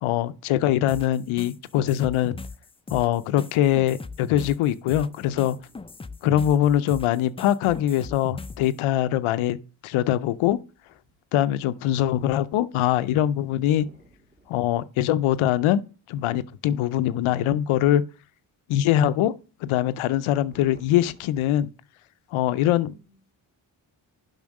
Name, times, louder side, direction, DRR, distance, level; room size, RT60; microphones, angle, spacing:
voice 1, 0.0-2.4 2.9-5.6 6.2-9.6 9.8-10.6 11.3-13.9 14.5-15.8 16.1-18.0 18.7-19.3 19.6-21.7 22.3-22.9, left 12 dB, 90° left, 0.6 m, -22 dB
sound 1, 0.9-8.7, left 3 dB, 15° left, 0.4 m, -39 dB
voice 2, 5.0-5.6 13.7-14.5 20.5-21.1 22.9-23.3, right 1 dB, 20° right, 2.7 m, -53 dB
7.1 x 5.6 x 6.3 m
cardioid pair, 55°, 48 cm